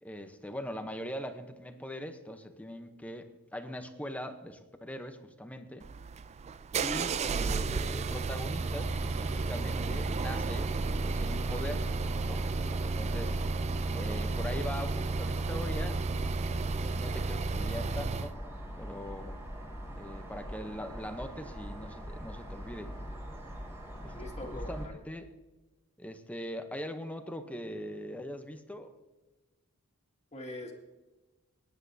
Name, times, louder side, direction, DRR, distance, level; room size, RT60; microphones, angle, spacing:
voice 1, 0.0-5.9 6.8-10.7 11.0-11.9 12.2-12.5 13.0-13.4 13.9-16.0 16.8-18.4 18.8-19.4 20.0-22.9 24.0-24.1 24.5-25.3 26.0-28.9, equal, 5° left, 8 dB, 0.8 m, -41 dB
sound 1, 5.8-18.3, right 3 dB, 30° right, 0.3 m, -32 dB
sound 2, 8.6-24.9, equal, 10° right, 2.9 m, -42 dB
voice 2, 24.1-24.9 30.3-30.7, left 1 dB, 30° left, 1 dB, 2.1 m, -43 dB
20.5 x 10.0 x 2.7 m, 1.1 s
head